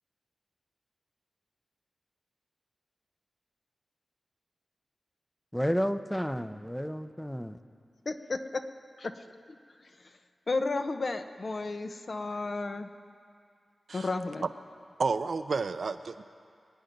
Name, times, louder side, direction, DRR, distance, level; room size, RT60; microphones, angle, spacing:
voice 1, 5.5-7.6, equal, 5° left, 11 dB, 0.6 m, -31 dB
voice 2, 8.0-8.4 9.0-9.2 10.5-12.9 13.9-14.4, left 3 dB, 55° left, 8 dB, 0.8 m, -32 dB
voice 3, 15.0-16.2, right 4 dB, 65° right, 10 dB, 0.5 m, -31 dB
24.0 x 9.1 x 5.3 m, 2.3 s
wide cardioid pair, 75°, 0 cm